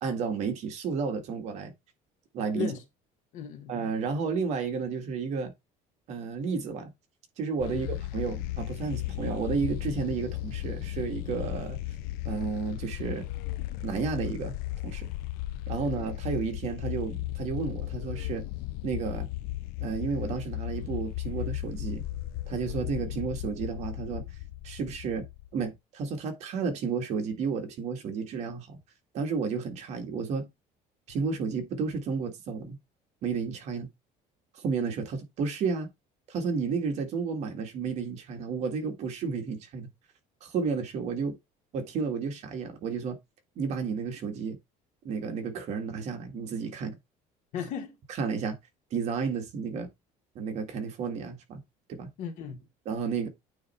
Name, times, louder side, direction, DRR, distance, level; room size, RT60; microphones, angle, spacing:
voice 1, 0.0-1.7 2.3-2.7 3.7-5.5 6.1-6.9 7.4-7.9 8.1-11.8 12.3-13.3 13.8-14.5 14.8-15.1 15.7-18.5 18.8-19.3 19.8-22.0 22.5-24.2 24.6-25.3 25.5-28.8 29.1-30.5 31.1-32.8 33.2-33.9 34.5-35.9 36.3-39.9 40.4-41.4 41.7-43.2 43.6-44.6 45.0-47.0 48.2-48.6 48.9-49.9 50.4-51.6 51.9-52.1 52.9-53.3, right 5 dB, 45° right, 1.9 m, -32 dB
voice 2, 3.3-3.7 7.6-7.9 15.8-15.9 47.5-48.0 52.2-52.7, left 8 dB, 55° left, 1.9 m, -36 dB
sound 1, 7.6-25.7, left 15 dB, 80° left, 0.6 m, -35 dB
9.1 x 3.2 x 4.3 m
cardioid pair, 175°, 15 cm